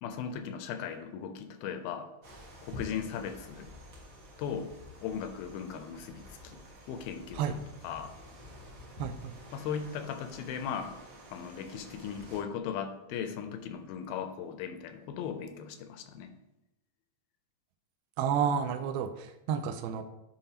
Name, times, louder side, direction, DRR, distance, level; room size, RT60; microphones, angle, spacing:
voice 1, 0.0-2.1 2.6-3.7 4.4-4.7 5.0-6.6 6.9-8.1 9.5-10.9 11.3-16.3, left 7 dB, 85° left, 7 dB, 2.4 m, -38 dB
sound 1, 2.2-12.4, left 1 dB, 65° right, 1.2 m, -50 dB
voice 2, 9.0-9.3 18.2-20.0, right 7 dB, 85° right, 9 dB, 2.4 m, -31 dB
8.9 x 5.3 x 2.8 m, 0.93 s
omnidirectional pair, 4.4 m